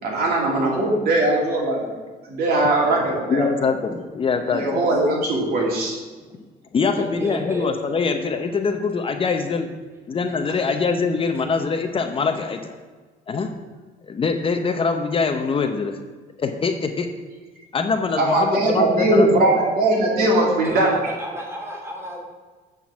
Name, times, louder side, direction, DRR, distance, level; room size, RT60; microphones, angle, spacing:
voice 1, 0.0-2.0 2.3-3.4 4.5-6.0 18.2-21.2, right 2 dB, 65° right, -2 dB, 2.4 m, -20 dB
voice 2, 3.3-4.7 6.7-9.7 10.1-12.7 13.3-13.5 14.1-16.0 16.4-17.1 17.7-19.3, left 4 dB, 30° left, 6 dB, 0.7 m, -23 dB
voice 3, 7.0-7.7 20.6-22.2, equal, 15° right, -2 dB, 2.2 m, -31 dB
8.7 x 3.9 x 7.0 m, 1.4 s
cardioid pair, 110°, 17 cm